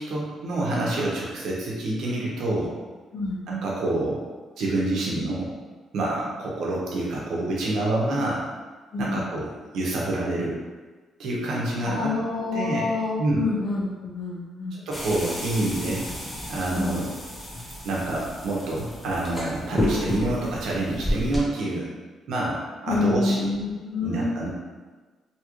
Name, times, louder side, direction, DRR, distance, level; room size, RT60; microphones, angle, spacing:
voice 1, 0.0-2.7 3.5-4.2 4.6-5.5 5.9-8.4 9.0-9.5 9.7-10.6 11.2-12.1 12.5-12.8 13.2-13.4 14.9-16.0 16.5-17.1 17.8-21.9 22.3-23.5 24.0-24.5, right 2 dB, 75° right, -4 dB, 0.8 m, -27 dB
voice 2, 3.1-3.4 8.9-9.3 11.8-14.8 16.7-17.0 22.9-24.3, left 3 dB, 60° left, -4 dB, 0.8 m, -27 dB
sound 1, 14.9-21.4, equal, 15° left, 0.8 m, -31 dB
2.9 x 2.4 x 3.0 m, 1.3 s
cardioid pair, 90°, 0 cm